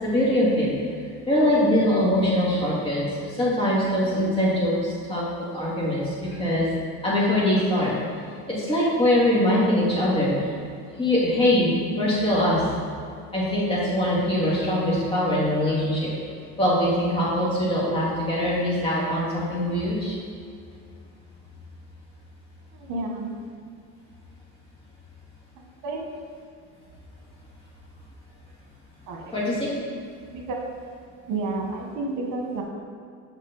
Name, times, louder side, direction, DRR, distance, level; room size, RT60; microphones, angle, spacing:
voice 1, 0.0-0.7 1.3-6.7 7.0-7.9 8.5-10.5 11.0-11.7 12.0-12.6 13.3-16.1 16.6-20.2 29.3-29.7, left 1 dB, 20° left, -7 dB, 2.0 m, -22 dB
voice 2, 22.7-23.3 25.8-26.1 29.1-29.3 30.3-30.6 31.3-32.6, right 3 dB, 85° right, 0 dB, 1.3 m, -30 dB
8.2 x 5.5 x 4.0 m, 2.3 s
cardioid pair, 165°, 30 cm